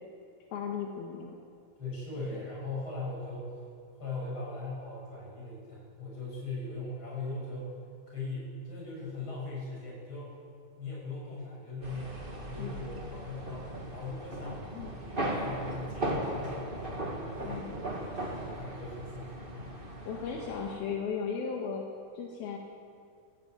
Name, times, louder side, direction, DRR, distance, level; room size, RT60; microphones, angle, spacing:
voice 1, 0.5-1.3 12.6-12.7 14.7-14.9 17.4-17.8 20.1-21.8 22.1-22.6, left 6 dB, 75° left, 0 dB, 3.4 m, -36 dB
voice 2, 1.8-3.5 3.9-7.7 8.1-10.3 10.8-14.6 15.0-17.7 18.3-19.8, left 3 dB, 30° left, -5 dB, 8.1 m, -40 dB
sound 1, 11.8-20.8, right 1 dB, 20° right, 1.4 m, -37 dB
17.0 x 16.0 x 9.5 m, 2.3 s
omnidirectional pair, 4.4 m